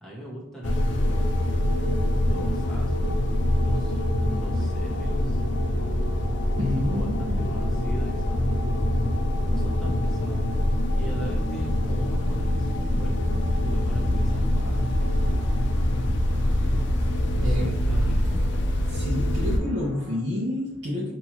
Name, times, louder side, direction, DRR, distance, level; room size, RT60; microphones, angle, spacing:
voice 1, 0.0-1.4 2.2-3.1 3.6-5.4 6.9-9.1 9.5-10.5 10.9-15.5 17.3-18.4, right 1 dB, ahead, -5 dB, 1.3 m, -40 dB
sound 1, 0.6-19.6, left 1 dB, 60° left, 0.5 m, -24 dB
voice 2, 6.6-7.6 17.0-17.7 18.0-18.2 18.9-21.1, left 1 dB, 60° right, -7 dB, 0.9 m, -29 dB
sound 2, 15.0-20.2, left 1 dB, 40° left, 1.4 m, -48 dB
5.7 x 2.9 x 3.0 m, 0.89 s
head